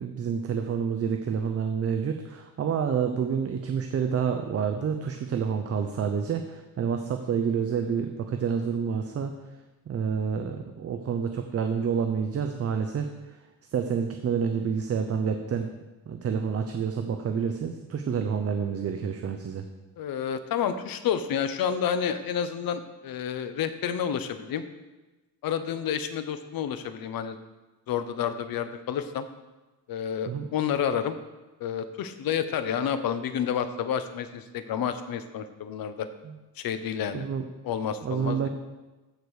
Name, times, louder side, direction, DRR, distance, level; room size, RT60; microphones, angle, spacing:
voice 1, 0.0-9.3 9.9-13.1 13.7-15.7 16.1-19.6 30.3-30.4 37.1-37.4 38.0-38.5, right 6 dB, 40° right, 6 dB, 0.7 m, -28 dB
voice 2, 20.0-24.6 25.4-27.4 27.9-29.3 29.9-31.2 31.6-36.1 36.6-37.2 37.6-38.5, left 8 dB, 65° left, 10 dB, 1.0 m, -30 dB
15.0 x 5.1 x 6.4 m, 1.1 s
cardioid pair, 160°, 37 cm